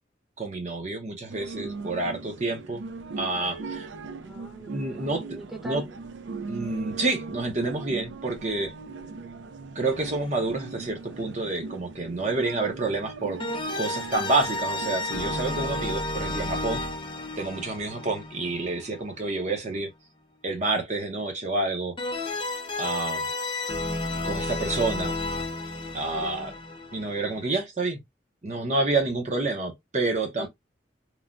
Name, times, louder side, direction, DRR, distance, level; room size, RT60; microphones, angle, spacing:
voice 1, 0.4-2.8 3.2-3.9 4.7-5.2 5.6-5.8 6.5-8.7 9.7-13.4 13.7-16.8 17.4-19.9 20.4-22.0 22.8-23.3 24.2-25.1 25.9-26.5 26.9-28.0 28.4-30.5, right 2 dB, 40° right, 0.7 m, -28 dB
sound 1, 1.3-16.0, right 4 dB, 80° right, 0.4 m, -39 dB
voice 2, 4.2-5.8 26.0-26.5 30.4-30.5, right 1 dB, ahead, 0.7 m, -40 dB
sound 2, 9.9-10.8 13.4-19.4 22.0-27.6, left 2 dB, 25° left, 0.4 m, -32 dB
3.1 x 2.1 x 2.5 m
head